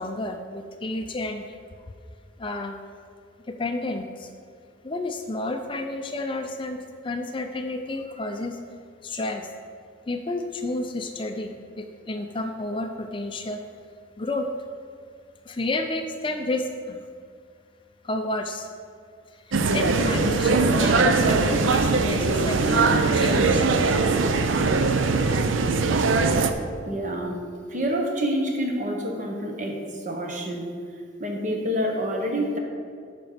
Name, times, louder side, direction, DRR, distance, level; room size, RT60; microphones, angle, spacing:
voice 1, 0.0-1.6 2.4-2.8 3.5-4.3 4.8-8.6 9.0-9.5 10.1-13.6 14.2-14.5 15.5-17.0 18.0-18.7 19.5-23.7, left 2 dB, 25° left, 5 dB, 0.4 m, -31 dB
sound 1, 19.5-26.5, right 3 dB, 90° right, 0.6 m, -21 dB
voice 2, 26.8-27.4 27.7-30.7 31.2-32.6, equal, 40° right, 1 dB, 1.2 m, -27 dB
9.1 x 6.0 x 5.1 m, 2.2 s
head